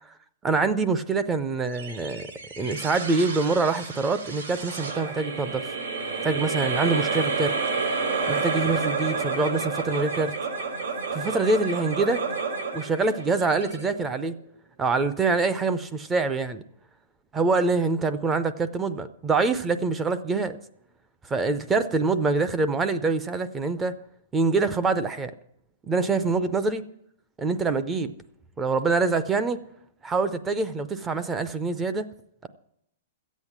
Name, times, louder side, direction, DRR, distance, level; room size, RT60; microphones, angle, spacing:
voice 1, 0.4-2.3 2.6-5.7 6.2-7.5 8.3-10.3 11.1-12.2 12.7-14.4 14.8-16.6 17.3-20.6 21.3-23.9 24.3-25.3 25.9-26.8 27.4-28.1 28.6-29.6 30.0-32.1 32.4-32.5, right 3 dB, 10° right, 12 dB, 0.4 m, -25 dB
sound 1, 1.7-14.4, right 4 dB, 75° right, 3.7 m, -30 dB
14.0 x 8.2 x 7.2 m, 0.76 s
hypercardioid pair, 180°, 0 cm